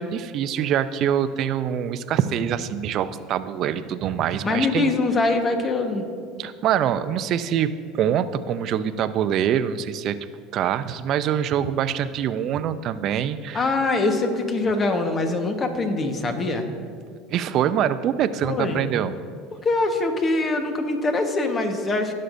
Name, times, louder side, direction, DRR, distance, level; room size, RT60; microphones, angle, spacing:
voice 1, 0.0-4.9 6.4-10.2 10.5-13.6 17.3-19.1, right 9 dB, 55° right, 13 dB, 0.5 m, -24 dB
voice 2, 4.4-6.1 13.5-16.6 18.4-18.8 19.6-22.1, left 2 dB, 35° left, 5 dB, 1.2 m, -23 dB
19.0 x 6.5 x 2.6 m, 2.1 s
hypercardioid pair, 85°, 0 cm